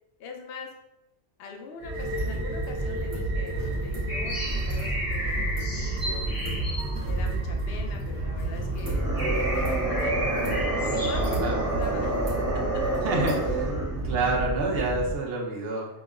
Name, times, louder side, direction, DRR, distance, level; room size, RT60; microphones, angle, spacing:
voice 1, 0.2-0.7 1.4-6.5 7.0-9.0 9.3-10.1 10.7-12.8, left 4 dB, 65° left, 2 dB, 0.7 m, -42 dB
sound 1, 1.8-15.1, right 2 dB, 75° right, 1.0 m, -30 dB
sound 2, 4.1-8.0 8.5-8.6 8.9-11.4, equal, 20° left, 0.7 m, -34 dB
sound 3, 8.7-14.1, right 2 dB, 20° right, 0.4 m, -29 dB
voice 2, 13.0-13.7 14.0-15.9, right 2 dB, 60° right, -1 dB, 0.9 m, -28 dB
5.1 x 2.0 x 2.4 m, 0.94 s
omnidirectional pair, 1.2 m